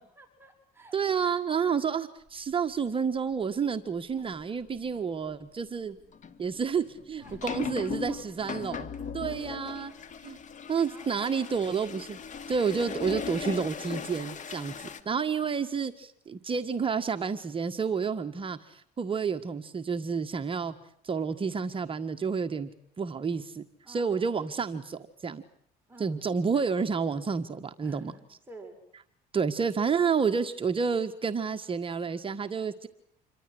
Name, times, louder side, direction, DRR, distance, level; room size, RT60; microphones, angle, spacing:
voice 1, 0.0-1.0 1.5-1.7 7.2-10.1 10.8-11.7 14.6-15.2 23.8-24.2 25.9-26.2 27.8-28.8, right 2 dB, 15° right, 2 dB, 6.8 m, -53 dB
voice 2, 0.9-6.0 6.4-9.9 10.2-10.4 10.7-12.2 12.5-20.7 21.0-22.7 23.0-25.4 26.0-28.1 29.3-32.9, right 6 dB, 30° right, 7 dB, 1.6 m, -30 dB
sound 1, 4.2-4.3 4.8-5.0 6.1-15.0, left 6 dB, 45° left, 2.6 m, -38 dB
28.0 x 24.0 x 7.9 m, 0.67 s
cardioid pair, 110°, 17 cm